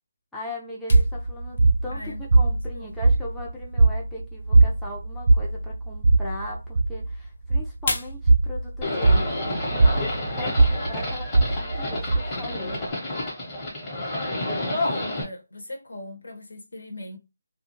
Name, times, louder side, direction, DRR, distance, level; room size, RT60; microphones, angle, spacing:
voice 1, 0.3-12.9, left 1 dB, 5° left, 0.5 m, -39 dB
sound 1, 0.9-11.6, left 3 dB, 50° left, 0.6 m, -41 dB
sound 2, 0.9-12.9, right 2 dB, 60° right, 0.3 m, -21 dB
voice 2, 2.7-3.1 14.7-17.2, left 1 dB, 75° left, 1.1 m, -38 dB
Livestock farm animals working animals, 8.8-15.2, left 1 dB, 20° left, 1.0 m, -30 dB
2.4 x 2.3 x 3.0 m
figure-of-eight pair, 160°, 0 cm